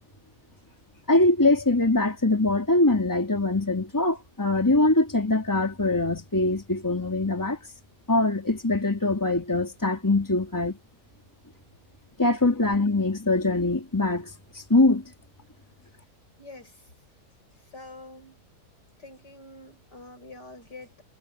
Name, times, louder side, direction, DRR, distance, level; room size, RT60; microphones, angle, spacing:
voice 1, 1.1-7.6 8.1-10.8 12.2-15.0, left 2 dB, 10° left, 3.2 m, -23 dB
voice 2, 16.4-16.8 17.7-18.5 19.0-21.0, left 2 dB, 90° left, 7.5 m, -46 dB
omnidirectional pair, 1.8 m